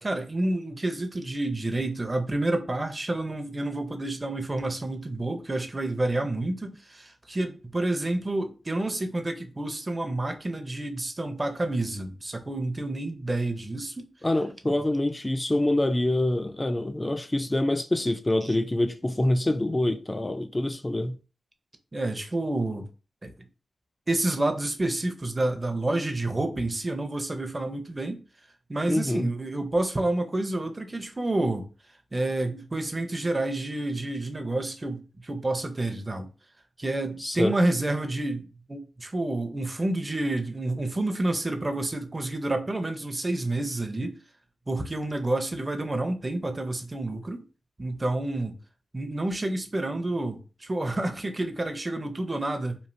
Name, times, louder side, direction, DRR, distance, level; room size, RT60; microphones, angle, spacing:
voice 1, 0.0-14.1 14.7-14.8 18.4-18.6 21.9-22.9 23.2-23.3 24.1-28.2 28.7-31.7 32.1-36.3 36.8-44.2 44.7-47.4 47.8-48.6 48.9-52.8, right 2 dB, 25° right, 0.6 m, -29 dB
voice 2, 14.2-21.2 28.9-29.3 37.2-37.6, left 1 dB, 20° left, 0.3 m, -26 dB
3.1 x 2.4 x 2.6 m
cardioid pair, 60°, 0 cm